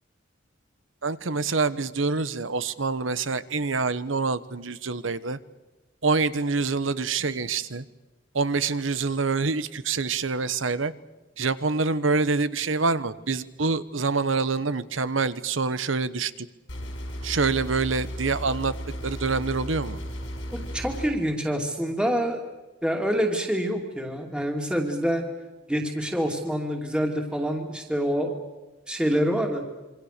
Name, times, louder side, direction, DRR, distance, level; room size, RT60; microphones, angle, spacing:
voice 1, 1.0-5.4 6.0-7.8 8.3-10.9 11.4-16.5 17.2-18.7 19.0-20.0, right 4 dB, 85° right, 15 dB, 1.1 m, -26 dB
sound 1, 16.7-21.1, equal, 90° left, 5.6 m, -35 dB
voice 2, 20.5-22.4 22.8-25.2 25.7-28.4 28.9-29.6, equal, 5° right, 2 dB, 2.6 m, -26 dB
27.5 x 25.0 x 6.7 m, 1.1 s
head